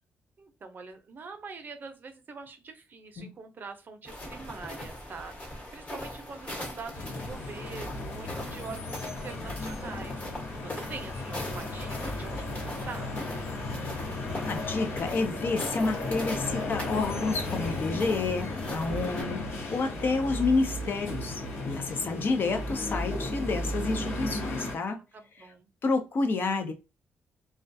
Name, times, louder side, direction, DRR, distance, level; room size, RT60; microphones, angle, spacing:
voice 1, 0.4-10.2 10.6-13.1 24.6-25.7, right 4 dB, 45° right, 0.5 m, -44 dB
sound 1, 4.0-19.2, left 1 dB, 35° left, 1.1 m, -41 dB
sound 2, 6.9-24.7, left 2 dB, 75° left, 1.0 m, -35 dB
voice 2, 14.5-25.0 25.8-26.7, left 3 dB, 50° left, 0.5 m, -29 dB
2.2 x 2.2 x 2.6 m
cardioid pair, 95°, 4 cm